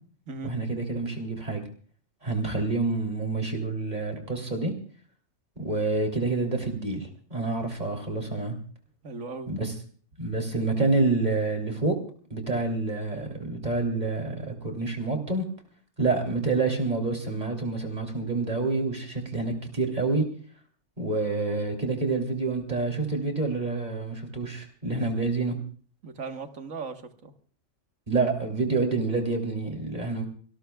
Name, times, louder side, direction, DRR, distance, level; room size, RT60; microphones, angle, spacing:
voice 1, 0.4-1.6 2.2-4.7 5.6-8.5 9.5-9.7 10.2-12.0 12.3-15.4 16.0-20.2 21.0-25.5 28.1-30.3, right 3 dB, 35° right, 3 dB, 3.2 m, -28 dB
voice 2, 9.0-9.5 26.0-27.3, right 4 dB, 85° right, 6 dB, 1.8 m, -38 dB
26.5 x 18.5 x 2.3 m, 0.43 s
omnidirectional pair, 1.3 m